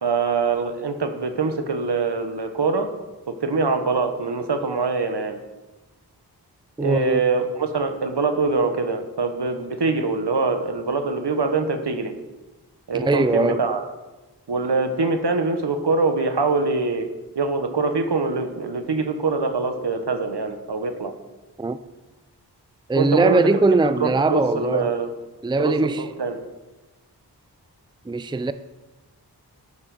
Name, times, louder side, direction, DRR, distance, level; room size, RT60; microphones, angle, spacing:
voice 1, 0.0-2.9 3.4-5.4 6.8-12.1 12.9-13.8 14.5-17.1 17.3-21.1 22.9-23.5 24.0-25.1 25.6-26.4, right 4 dB, 75° right, 1.4 m, -24 dB
voice 2, 6.8-7.2 12.9-13.7 21.6-21.8 22.9-24.9 25.4-26.0 28.1-28.5, right 3 dB, 10° right, 0.5 m, -21 dB
12.0 x 5.7 x 6.5 m
cardioid pair, 45°, 41 cm